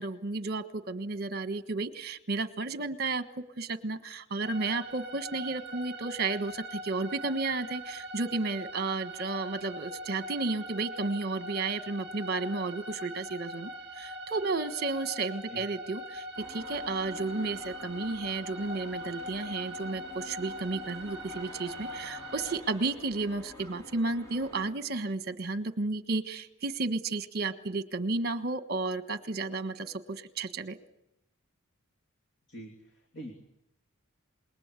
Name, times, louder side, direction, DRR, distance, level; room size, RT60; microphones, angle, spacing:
voice 1, 0.0-13.7 14.0-30.8, right 3 dB, 45° right, 11 dB, 1.4 m, -33 dB
sound 1, 4.4-22.6, equal, 25° right, 5.3 m, -42 dB
sound 2, 16.4-24.7, left 1 dB, 15° left, 3.2 m, -49 dB
voice 2, 32.5-33.3, right 1 dB, 55° left, 4 dB, 2.8 m, -44 dB
27.0 x 21.5 x 8.3 m, 0.82 s
head